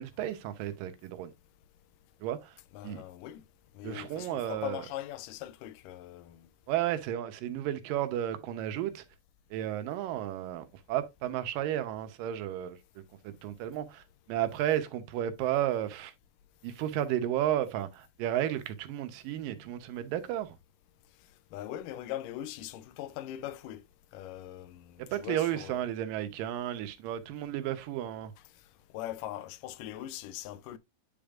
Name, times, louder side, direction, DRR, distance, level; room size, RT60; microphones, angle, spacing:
voice 1, 0.0-1.3 2.2-2.5 2.8-3.0 3.8-4.9 6.7-9.0 9.5-16.1 16.6-20.6 25.1-28.3, right 12 dB, 90° right, 2.5 m, -33 dB
voice 2, 2.7-3.4 3.8-6.4 21.5-23.8 24.1-25.8 28.9-30.8, left 13 dB, 85° left, 2.1 m, -41 dB
9.5 x 5.2 x 2.4 m
omnidirectional pair, 3.8 m